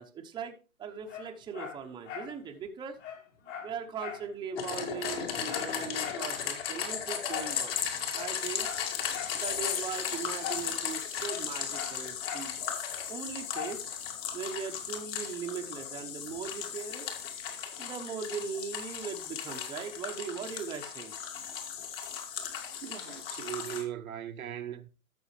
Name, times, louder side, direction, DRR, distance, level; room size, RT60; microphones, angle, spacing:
voice 1, 0.0-3.0 3.6-7.7 8.1-8.7 9.3-12.5 13.1-13.8 14.3-17.1 17.8-21.1, right 6 dB, 10° right, 0.9 m, -39 dB
Dog, 1.1-2.4 2.7-2.8 3.0-4.3 4.6-4.7 5.0-6.3 7.3-7.6 8.1-9.4 10.4-10.7 11.0-12.5 13.5-13.8 14.3-14.4, left 9 dB, 65° left, 6.1 m, -41 dB
sound 1, 4.6-23.8, left 8 dB, 45° left, 2.4 m, -36 dB
voice 2, 22.8-24.9, right 10 dB, 80° right, 1.1 m, -39 dB
12.5 x 6.9 x 3.2 m
hypercardioid pair, 130°, 41 cm